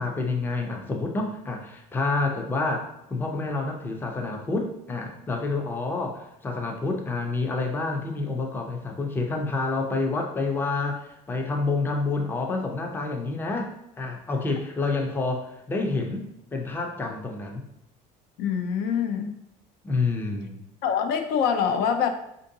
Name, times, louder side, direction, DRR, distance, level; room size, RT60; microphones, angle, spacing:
voice 1, 0.0-16.3 16.5-17.6 19.8-20.6, left 3 dB, 15° left, 2 dB, 0.4 m, -28 dB
voice 2, 18.4-19.4 20.8-22.1, left 7 dB, 80° left, 6 dB, 0.5 m, -25 dB
4.4 x 2.6 x 2.7 m, 0.78 s
cardioid pair, 150°, 16 cm